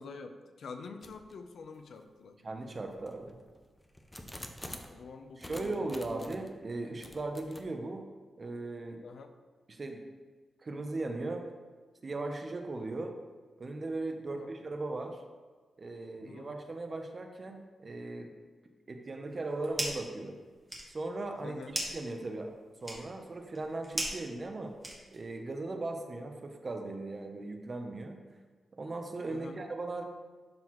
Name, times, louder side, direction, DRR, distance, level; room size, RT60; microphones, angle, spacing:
voice 1, 0.0-2.4 4.9-6.3 9.0-9.3 14.3-14.5 16.2-16.5 21.4-21.8 29.3-29.6, left 4 dB, 70° left, 7 dB, 0.5 m, -46 dB
sound 1, 1.0-1.4 2.0-2.1 2.7-5.0 5.4-6.5 7.0-7.6, left 1 dB, 10° left, 0.5 m, -47 dB
voice 2, 2.4-3.4 5.4-8.0 8.4-9.0 9.7-10.0 10.6-11.5 12.0-13.1 13.6-15.2 15.8-18.3 18.9-20.4 20.9-22.5 22.8-24.7 25.1-28.2 28.8-30.0, right 2 dB, 30° right, 4 dB, 0.6 m, -38 dB
sound 2, 19.3-20.1 20.5-25.4, right 1 dB, 10° right, 1.2 m, -39 dB
11.5 x 4.0 x 3.0 m, 1.4 s
wide cardioid pair, 170°, 0 cm